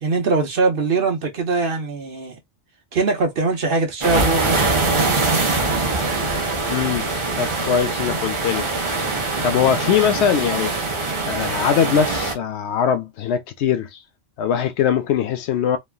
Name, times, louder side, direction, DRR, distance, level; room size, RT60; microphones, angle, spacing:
voice 1, 0.0-2.4 2.9-5.2, right 3 dB, 60° right, 1.0 m, -22 dB
sound 1, 4.0-12.3, right 3 dB, 35° right, 0.6 m, -23 dB
voice 2, 6.7-7.1 7.4-8.7 9.4-10.7 11.3-14.0 14.4-15.8, left 8 dB, 80° left, 0.8 m, -21 dB
3.1 x 2.3 x 2.3 m
omnidirectional pair, 1.1 m